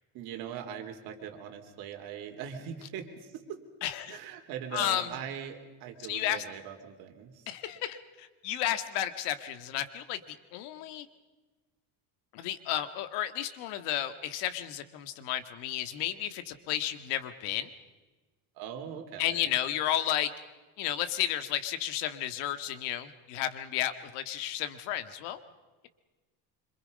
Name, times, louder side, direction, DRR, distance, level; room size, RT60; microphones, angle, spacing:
voice 1, 0.1-3.6 4.1-7.5 18.6-19.5, right 8 dB, 60° right, 4 dB, 3.7 m, -41 dB
voice 2, 3.8-4.2 4.7-5.1 6.1-6.4 7.5-11.1 12.3-17.7 19.2-20.3 20.8-25.4, left 12 dB, 80° left, 10 dB, 1.9 m, -32 dB
26.5 x 26.0 x 5.4 m, 1.2 s
cardioid pair, 155°, 40 cm